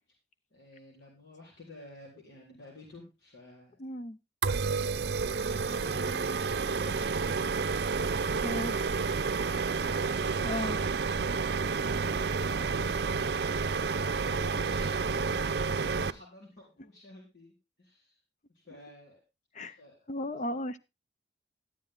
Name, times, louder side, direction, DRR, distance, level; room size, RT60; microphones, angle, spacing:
voice 1, 0.5-3.8 4.6-7.3 7.7-9.7 10.2-10.5 11.8-13.5 14.1-15.5 15.9-18.2 18.5-19.2 19.6-20.4, left 2 dB, 70° left, -3 dB, 3.8 m, -52 dB
voice 2, 3.8-4.2 8.4-8.7 10.4-10.8 19.5-19.8 20.1-20.8, left 1 dB, 40° left, 13 dB, 0.6 m, -35 dB
sound 1, 4.4-16.1, right 4 dB, 60° right, 0.6 m, -30 dB
13.0 x 9.9 x 3.7 m, 0.25 s
head